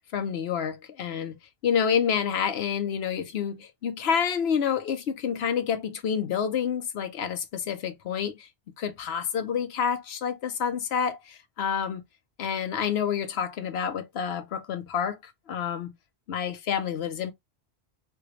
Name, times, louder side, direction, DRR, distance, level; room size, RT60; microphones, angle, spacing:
voice 1, 0.1-8.5 8.8-12.0 12.4-15.9 16.3-17.3, left 7 dB, 75° left, 1.0 m, -28 dB
3.4 x 2.9 x 3.0 m
omnidirectional pair, 1.1 m